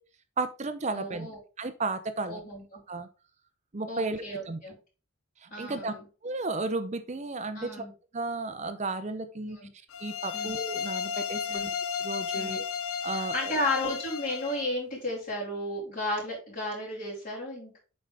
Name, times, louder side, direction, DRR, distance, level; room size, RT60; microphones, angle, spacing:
voice 1, 0.4-1.3 1.6-2.4 2.9-3.1 3.7-4.6 5.4-5.9 6.2-7.8 8.1-9.6 10.0-11.7 12.0-12.6 13.0-13.5, right 3 dB, 35° right, 10 dB, 0.6 m, -33 dB
voice 2, 0.9-1.4 2.3-2.8 3.9-4.8 5.5-6.0 7.5-7.9 9.4-9.7 10.3-10.5 11.5-11.7 12.3-12.6 13.1-17.8, left 1 dB, 40° left, -9 dB, 3.0 m, -34 dB
sound 1, 9.9-14.7, left 7 dB, 90° left, 0.6 m, -34 dB
7.5 x 5.4 x 3.4 m, 0.34 s
head